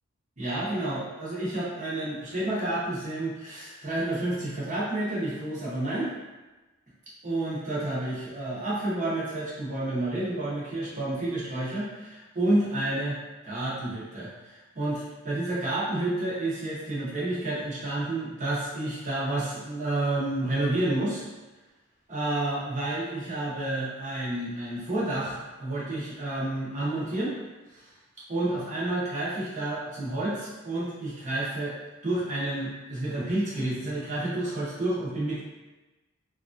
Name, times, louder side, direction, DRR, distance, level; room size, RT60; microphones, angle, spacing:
voice 1, 0.4-6.1 7.2-13.2 13.4-21.2 22.1-27.3 27.7-27.9 28.3-31.8 32.0-35.4, right 1 dB, 40° right, -8 dB, 0.9 m, -30 dB
2.9 x 2.5 x 2.5 m, 1.1 s
head